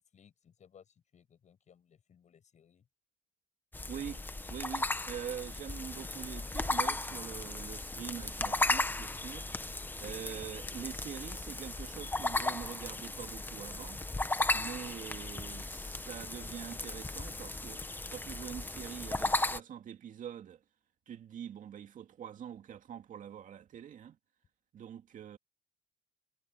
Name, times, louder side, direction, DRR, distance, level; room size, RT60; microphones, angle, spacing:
voice 1, 0.0-2.9, left 8 dB, 45° left, 7.6 m, -62 dB
sound 1, 3.7-19.6, left 2 dB, 10° left, 1.2 m, -36 dB
voice 2, 3.9-4.2 4.5-9.5 10.0-14.0 14.5-17.8 18.1-20.6 21.1-24.2 24.7-25.4, right 9 dB, 50° right, 2.3 m, -44 dB
cardioid pair, 110°, 17 cm